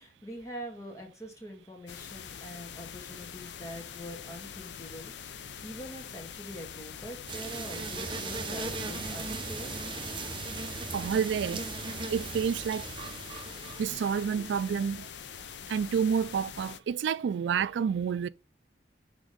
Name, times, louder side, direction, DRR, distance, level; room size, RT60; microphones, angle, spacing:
voice 1, 0.0-9.8, equal, 20° left, 1.8 m, -44 dB
sound 1, 1.9-16.8, left 8 dB, 80° left, 0.5 m, -44 dB
sound 2, 7.3-14.8, right 3 dB, 30° right, 0.9 m, -38 dB
voice 2, 10.9-11.7 12.1-12.9 13.8-15.1 15.7-18.3, right 7 dB, 85° right, 0.3 m, -29 dB
6.3 x 3.5 x 5.1 m
head